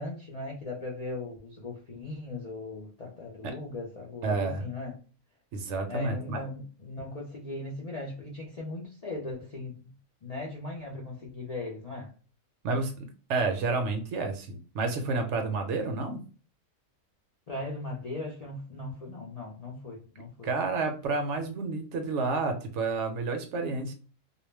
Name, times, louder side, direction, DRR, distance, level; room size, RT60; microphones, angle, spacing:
voice 1, 0.0-4.9 5.9-9.9 10.2-12.1 17.5-20.5, left 2 dB, 50° left, 0.4 m, -38 dB
voice 2, 4.2-4.6 5.5-6.4 12.6-16.2 20.4-23.9, right 3 dB, 65° right, 0.8 m, -30 dB
2.3 x 2.1 x 3.1 m
omnidirectional pair, 1.4 m